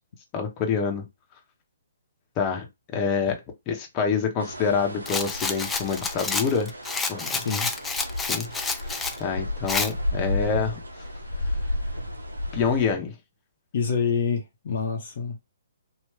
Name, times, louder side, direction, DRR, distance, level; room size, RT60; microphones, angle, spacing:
voice 1, 0.3-1.1 2.4-3.4 3.7-6.7 7.1-7.5 8.3-8.5 9.2-10.8 12.5-13.2, left 6 dB, 25° left, 1.0 m, -26 dB
sound 1, 4.4-12.9, left 1 dB, 90° right, 0.9 m, -33 dB
Rattle, 5.1-9.2 9.7-9.9, left 4 dB, 10° left, 0.4 m, -29 dB
voice 2, 7.4-7.7 13.7-15.4, left 6 dB, 50° left, 0.8 m, -27 dB
3.0 x 2.7 x 3.2 m
figure-of-eight pair, 130°, 0 cm